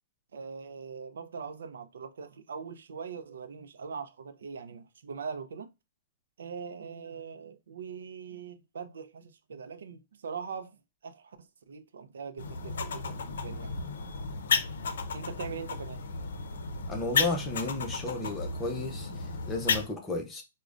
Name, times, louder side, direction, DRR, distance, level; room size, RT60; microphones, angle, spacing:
voice 1, 0.3-5.7 6.4-13.7 15.1-16.0, right 6 dB, 85° right, 0.4 m, -42 dB
sound 1, 12.4-19.9, left 5 dB, 75° left, 0.6 m, -33 dB
voice 2, 16.9-20.4, left 2 dB, 10° left, 0.7 m, -33 dB
4.8 x 2.2 x 2.4 m
hypercardioid pair, 165°, 0 cm